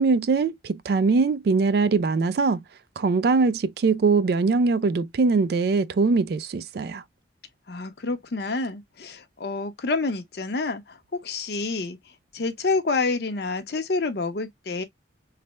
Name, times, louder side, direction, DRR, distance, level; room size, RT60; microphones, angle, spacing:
voice 1, 0.0-2.6 3.0-7.0, right 4 dB, 55° right, 0.3 m, -22 dB
voice 2, 7.7-12.0 12.3-14.8, left 3 dB, 55° left, 0.6 m, -28 dB
3.3 x 2.0 x 2.9 m
head